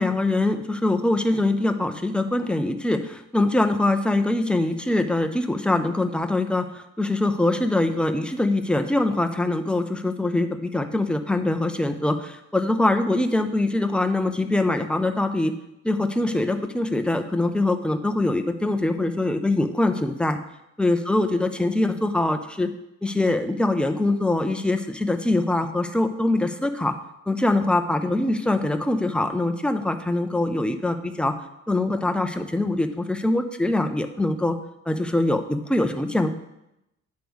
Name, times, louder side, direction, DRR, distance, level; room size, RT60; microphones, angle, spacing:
voice 1, 0.0-15.5 15.8-20.4 20.8-22.7 23.0-26.9 27.3-31.4 31.7-34.5 34.9-36.3, left 2 dB, 5° left, 7 dB, 0.6 m, -23 dB
9.3 x 3.4 x 6.2 m, 0.87 s
cardioid pair, 90°, 30 cm